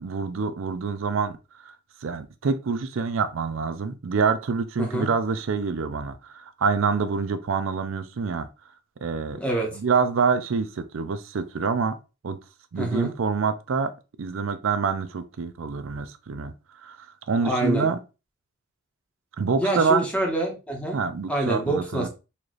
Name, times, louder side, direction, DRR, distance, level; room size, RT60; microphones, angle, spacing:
voice 1, 0.0-1.4 1.6-1.8 2.0-8.5 9.0-9.4 9.7-12.0 12.2-12.4 12.7-13.9 14.2-16.5 16.8-18.0 19.4-20.0 20.9-22.1, right 5 dB, 65° right, 0.5 m, -26 dB
voice 2, 9.3-9.7 12.8-13.1 17.4-17.9 19.6-21.0 21.3-22.1, right 1 dB, 5° left, 1.0 m, -26 dB
4.2 x 2.5 x 3.1 m
head